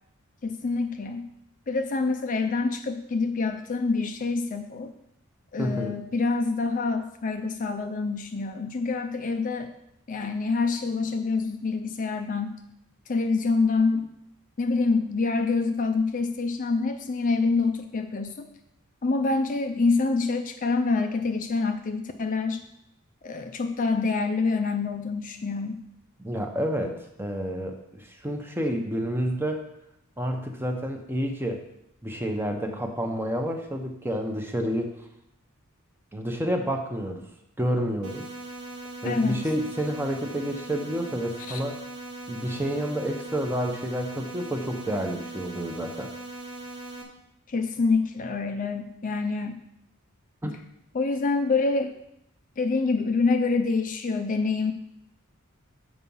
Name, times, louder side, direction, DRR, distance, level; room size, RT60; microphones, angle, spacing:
voice 1, 0.4-1.3 1.7-4.9 5.5-9.7 10.1-12.6 13.1-14.1 14.6-18.5 19.0-22.6 23.2-25.8 39.0-39.4 41.5-41.6 47.5-49.6 50.9-51.9 52.6-54.7, left 4 dB, 35° left, 7 dB, 0.4 m, -26 dB
voice 2, 5.6-6.0 26.2-29.6 30.2-31.6 32.0-34.9 36.1-37.2 37.6-38.3 39.0-41.8 42.3-46.1 50.4-50.5, equal, 10° right, 3 dB, 0.8 m, -29 dB
sound 1, 38.0-47.0, right 2 dB, 90° right, 1.4 m, -40 dB
7.4 x 4.7 x 5.5 m, 0.79 s
head